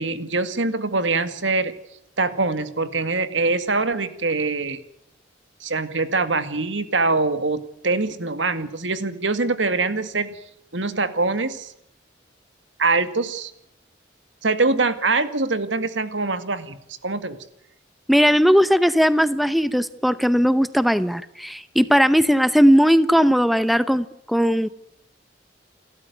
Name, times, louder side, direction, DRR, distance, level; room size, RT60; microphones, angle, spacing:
voice 1, 0.0-1.7 2.2-4.8 5.6-10.4 10.7-11.7 12.8-13.5 14.4-16.8 17.0-17.4, right 3 dB, 85° right, 11 dB, 2.1 m, -23 dB
voice 2, 18.1-24.7, equal, ahead, 13 dB, 0.8 m, -18 dB
29.0 x 13.5 x 9.4 m, 0.80 s
head